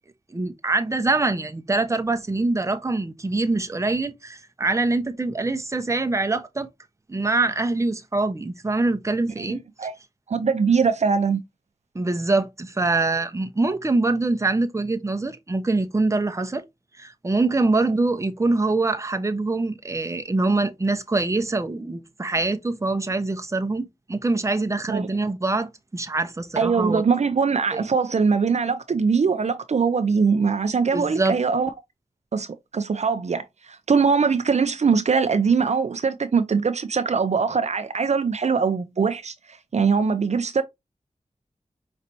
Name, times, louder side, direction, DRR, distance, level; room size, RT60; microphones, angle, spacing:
voice 1, 0.3-6.7 7.1-9.6 11.9-16.6 17.0-27.0 27.7-27.8 30.9-31.3, right 3 dB, 25° right, 0.7 m, -24 dB
voice 2, 10.3-11.4 24.9-25.1 26.6-31.7 32.3-32.5 32.7-40.6, right 5 dB, 60° right, 0.5 m, -22 dB
5.1 x 3.2 x 2.7 m
wide cardioid pair, 75°, 13 cm